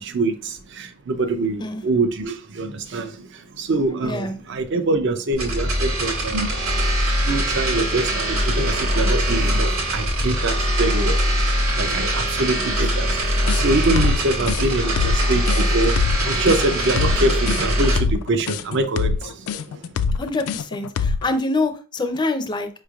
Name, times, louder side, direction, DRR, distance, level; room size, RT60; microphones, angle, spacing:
voice 1, 0.0-19.8, right 2 dB, 55° right, 0.5 m, -25 dB
voice 2, 4.0-4.4 20.2-22.7, left 2 dB, 20° left, 0.4 m, -25 dB
sound 1, 5.3-18.0, equal, 75° right, 1.5 m, -22 dB
sound 2, 13.5-21.3, left 5 dB, 80° left, 0.3 m, -24 dB
5.0 x 3.2 x 2.3 m
head